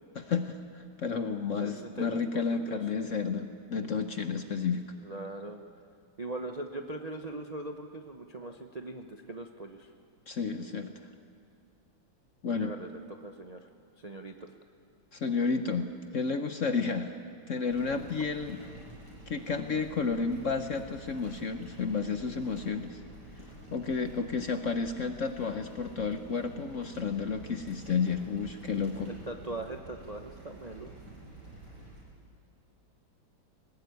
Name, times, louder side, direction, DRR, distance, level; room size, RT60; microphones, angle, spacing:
voice 1, 0.2-4.9 10.3-10.9 12.4-12.7 15.1-17.2 17.5-18.6 19.3-23.0 23.7-29.1, left 5 dB, 55° left, 8 dB, 0.9 m, -31 dB
voice 2, 1.6-2.8 5.0-5.6 6.2-9.9 12.5-13.7 14.0-14.5 29.1-30.9, right 2 dB, 35° right, 4 dB, 0.6 m, -40 dB
sound 1, 17.6-32.0, right 1 dB, 55° right, 7.8 m, -49 dB
20.5 x 19.0 x 9.5 m, 2.3 s
omnidirectional pair, 2.1 m